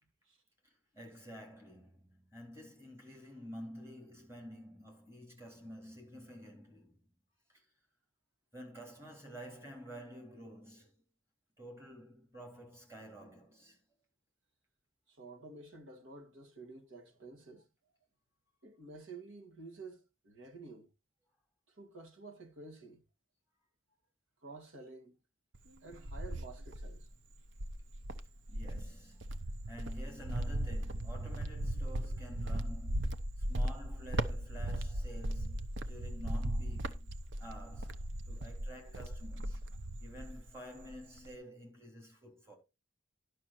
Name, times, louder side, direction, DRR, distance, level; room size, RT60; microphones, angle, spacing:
voice 1, 0.6-7.0 7.5-7.6 8.5-11.0 11.6-13.8 28.5-37.1 37.4-39.6 40.0-42.6, equal, 15° right, 3.6 m, -50 dB
voice 2, 15.1-17.6 18.6-20.9 21.7-23.0 24.4-25.1 25.8-27.1, right 3 dB, 80° right, 2.1 m, -51 dB
Cricket, 25.5-27.1 27.5-40.5 40.8-41.3, right 1 dB, 65° right, 0.8 m, -37 dB
11.0 x 6.2 x 4.3 m
head